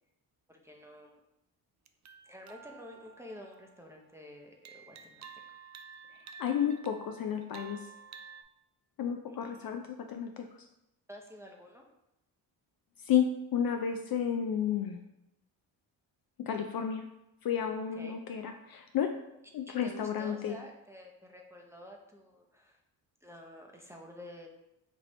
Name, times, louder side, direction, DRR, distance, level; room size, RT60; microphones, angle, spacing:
voice 1, 0.5-1.2 2.2-5.3 9.5-9.7 11.1-11.9 17.9-18.2 19.8-22.8 23.2-24.5, left 1 dB, 5° right, 0 dB, 0.7 m, -50 dB
sound 1, 1.9-4.1 4.6-8.4, right 5 dB, 40° right, 0.4 m, -51 dB
voice 2, 6.4-7.9 9.0-10.5 13.0-15.0 16.4-17.0 17.4-19.1 19.5-20.6, left 8 dB, 50° left, 5 dB, 0.4 m, -32 dB
4.5 x 2.6 x 3.1 m, 0.87 s
supercardioid pair, 55°, 49 cm